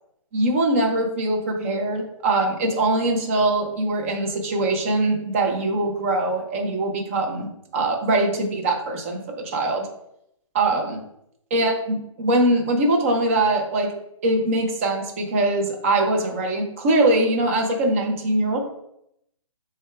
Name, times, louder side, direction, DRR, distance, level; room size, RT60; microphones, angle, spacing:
voice 1, 0.3-9.9 10.5-11.0 11.5-13.9 14.2-18.6, right 2 dB, 25° right, 2 dB, 0.7 m, -22 dB
6.1 x 2.3 x 3.4 m, 0.78 s
hypercardioid pair, 165°, 17 cm